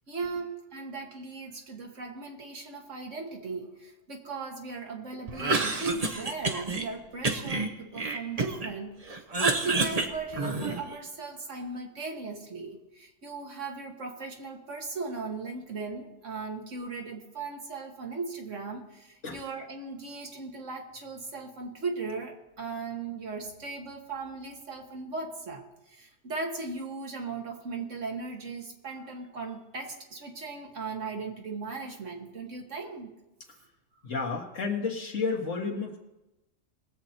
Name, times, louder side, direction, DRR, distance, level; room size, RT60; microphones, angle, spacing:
voice 1, 0.1-33.1, right 4 dB, 75° right, 2 dB, 1.9 m, -37 dB
Cough, 5.3-6.9 7.2-8.7 9.1-11.0, right 3 dB, 35° right, 1.0 m, -29 dB
voice 2, 34.0-36.0, left 4 dB, 80° left, 0 dB, 2.0 m, -31 dB
20.0 x 7.8 x 4.4 m, 0.98 s
omnidirectional pair, 1.3 m